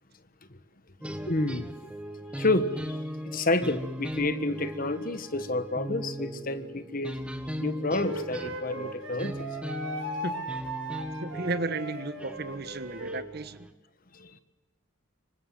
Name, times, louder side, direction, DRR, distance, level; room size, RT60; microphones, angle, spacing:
sound 1, 1.0-13.7, equal, 5° right, 1.5 m, -38 dB
voice 1, 1.3-1.7 2.4-3.0 3.2-7.1 7.6-9.5 14.1-14.4, left 2 dB, 40° left, 1.5 m, -29 dB
Wind instrument woodwind instrument, 8.0-13.3, right 1 dB, 65° right, 5.3 m, -38 dB
voice 2, 11.2-13.7, right 2 dB, 50° right, 1.3 m, -34 dB
27.0 x 25.0 x 7.8 m
head